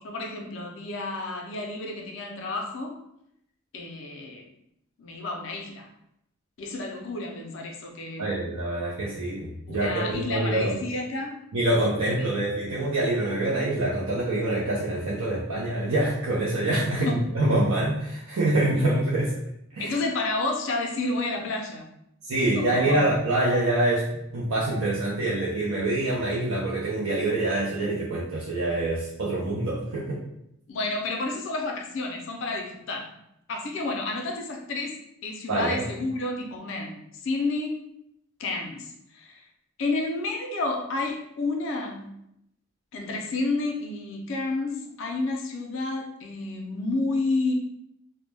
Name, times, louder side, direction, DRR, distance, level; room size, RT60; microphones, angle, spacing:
voice 1, 0.0-3.0 3.7-4.5 5.0-5.9 6.6-8.4 9.7-11.4 12.2-12.3 16.9-17.2 19.8-21.9 22.4-23.0 30.7-33.2 33.5-37.8 38.4-39.4 39.8-42.2 42.9-47.5, left 2 dB, 65° left, 1 dB, 0.4 m, -30 dB
voice 2, 8.2-10.8 11.5-19.3 19.7-20.0 22.2-24.0 24.3-30.2 35.5-35.8, right 1 dB, 80° right, -6 dB, 0.5 m, -25 dB
2.1 x 2.0 x 3.2 m, 0.78 s
head